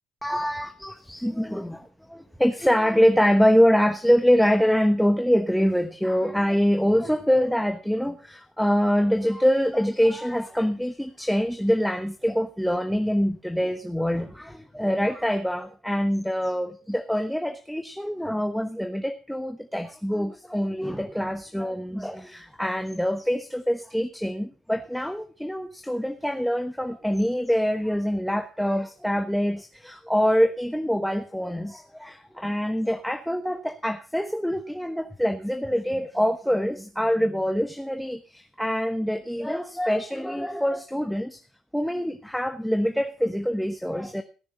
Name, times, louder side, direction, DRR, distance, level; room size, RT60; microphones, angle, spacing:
voice 1, 0.2-1.8 2.1-41.4 41.7-44.2, equal, ahead, 8 dB, 1.1 m, -25 dB
17.0 x 6.8 x 5.4 m, 0.36 s
hypercardioid pair, 55°, 0 cm